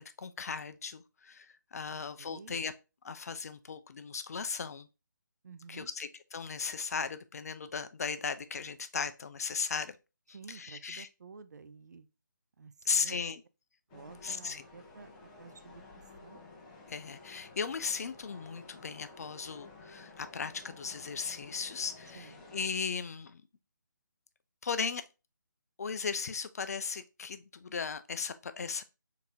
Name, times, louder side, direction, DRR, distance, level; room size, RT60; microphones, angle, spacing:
voice 1, 0.0-2.7 3.0-4.9 5.7-10.0 10.5-11.1 12.9-13.4 14.2-14.6 16.9-23.4 24.6-25.0 25.8-28.8, left 5 dB, 50° left, 0.4 m, -37 dB
voice 2, 1.9-2.5 5.4-5.9 10.3-12.1 12.6-13.2 13.9-15.1 15.4-15.8 16.2-16.4 22.1-22.4, right 5 dB, 60° right, 0.4 m, -51 dB
sound 1, 13.9-22.7, left 3 dB, 20° left, 0.7 m, -53 dB
3.9 x 2.8 x 3.5 m
figure-of-eight pair, 155°, 11 cm